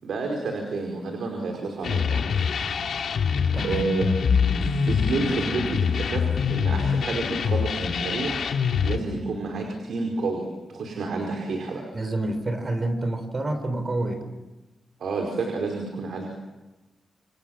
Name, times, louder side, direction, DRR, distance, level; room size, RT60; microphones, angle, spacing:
voice 1, 0.0-2.3 3.6-4.1 4.6-8.4 8.8-11.8 15.0-16.3, right 3 dB, 75° right, 2 dB, 5.0 m, -30 dB
sound 1, 1.8-9.0, left 6 dB, 70° left, 2.4 m, -24 dB
voice 2, 3.5-3.9 11.9-14.2, right 2 dB, 30° right, 8 dB, 3.9 m, -28 dB
29.5 x 27.0 x 7.4 m, 1.1 s
wide cardioid pair, 150°, 0 cm